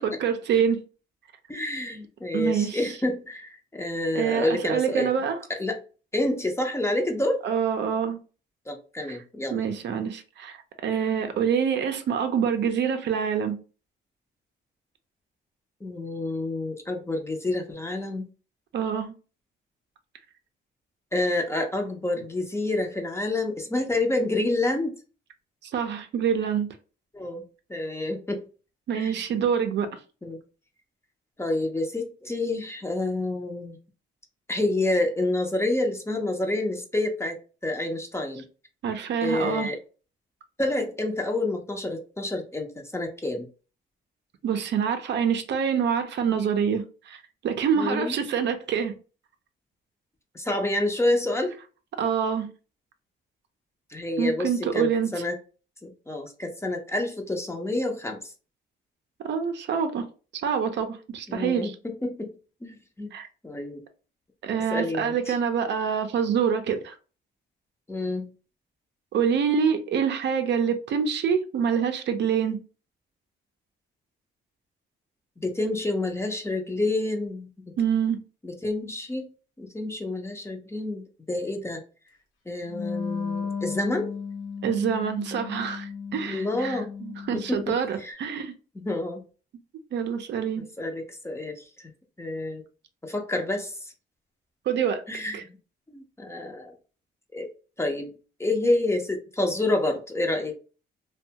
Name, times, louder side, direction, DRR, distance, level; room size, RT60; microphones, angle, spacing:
voice 1, 0.0-0.8 2.3-2.8 4.1-5.4 7.4-8.2 9.1-9.2 9.5-10.6 10.8-13.6 18.7-19.1 25.6-26.7 28.9-29.9 38.8-39.7 44.4-48.9 52.0-52.5 54.2-55.2 59.2-60.0 60.4-61.7 63.1-63.3 64.4-67.0 69.1-72.6 77.8-78.2 84.6-88.5 89.9-90.7 94.7-95.0 95.3-95.4, right 7 dB, 60° right, 0.5 m, -26 dB
voice 2, 1.5-5.1 5.5-5.8 6.1-7.4 8.7-9.5 15.8-18.3 21.1-24.9 27.1-27.4 27.7-28.4 28.9-29.2 30.2-30.4 31.4-33.8 34.5-38.4 39.2-39.8 40.6-43.5 47.7-48.2 50.3-51.5 53.9-55.4 55.8-58.3 61.3-62.3 62.6-63.1 63.4-63.8 64.7-65.3 67.9-68.3 75.4-77.5 78.4-79.3 79.6-81.8 82.5-84.1 86.3-86.9 87.3-88.2 88.7-89.2 90.8-91.9 92.2-92.6 93.0-93.9 95.1-95.4 95.9-96.7 97.3-97.5 97.8-98.1 98.4-100.5, left 2 dB, 15° left, 0.5 m, -28 dB
Wind instrument woodwind instrument, 82.7-87.8, left 6 dB, 85° left, 0.8 m, -34 dB
2.6 x 2.2 x 2.7 m
cardioid pair, 90°, 20 cm